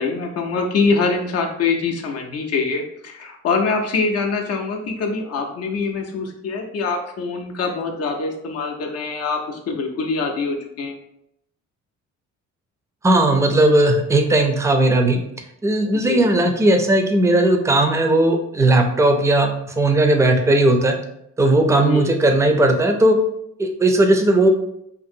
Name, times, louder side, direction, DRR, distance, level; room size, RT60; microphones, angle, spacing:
voice 1, 0.0-11.0 15.9-16.3 21.7-22.0, left 4 dB, 55° left, 3 dB, 0.5 m, -24 dB
voice 2, 13.0-15.2 15.6-20.9 21.4-23.2 23.6-24.5, right 1 dB, 10° right, 4 dB, 0.4 m, -17 dB
2.6 x 2.5 x 2.6 m, 0.75 s
cardioid pair, 90°, 30 cm